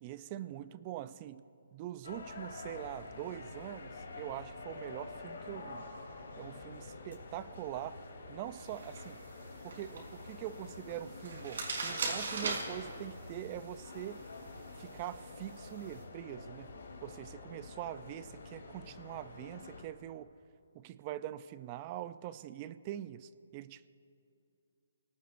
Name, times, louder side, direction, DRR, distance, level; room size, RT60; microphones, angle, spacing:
voice 1, 0.0-1.4 1.7-5.8 6.4-8.0 8.3-9.2 9.6-14.2 14.8-16.7 17.0-20.3 20.7-23.9, right 12 dB, 25° right, 15 dB, 0.4 m, -43 dB
sound 1, 2.0-19.8, left 3 dB, 80° left, 3.2 m, -48 dB
sound 2, 8.6-16.0, right 3 dB, 70° right, 4.9 m, -42 dB
30.0 x 18.5 x 2.6 m, 2.6 s
hypercardioid pair, 160°, 0 cm